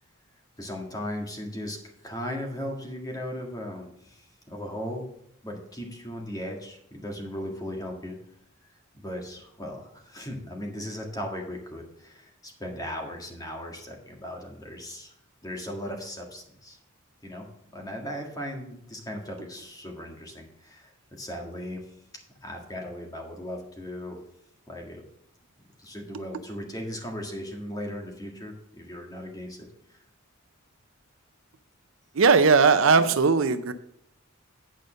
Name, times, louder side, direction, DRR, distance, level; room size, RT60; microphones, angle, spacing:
voice 1, 0.6-5.1 5.4-8.2 8.7-15.1 15.4-16.8 17.2-17.5 17.7-22.0 22.4-24.2 24.7-25.0 25.8-30.0, equal, 15° left, 1 dB, 1.7 m, -37 dB
voice 2, 32.2-33.7, right 4 dB, 60° right, 12 dB, 0.5 m, -19 dB
8.8 x 5.3 x 6.3 m, 0.75 s
head